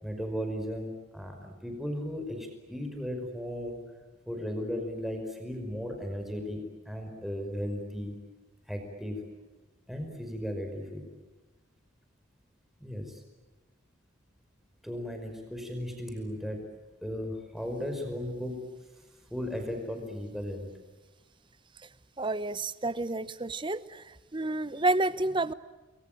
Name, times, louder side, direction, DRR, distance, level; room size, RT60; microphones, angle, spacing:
voice 1, 0.0-3.8 4.3-8.1 8.7-9.2 9.9-11.0 12.8-13.2 14.8-16.6 17.0-18.6 19.3-20.6, equal, ahead, 3 dB, 5.2 m, -36 dB
voice 2, 22.2-24.0 24.3-25.5, right 2 dB, 25° right, 16 dB, 0.8 m, -29 dB
28.5 x 22.5 x 9.3 m, 1.2 s
head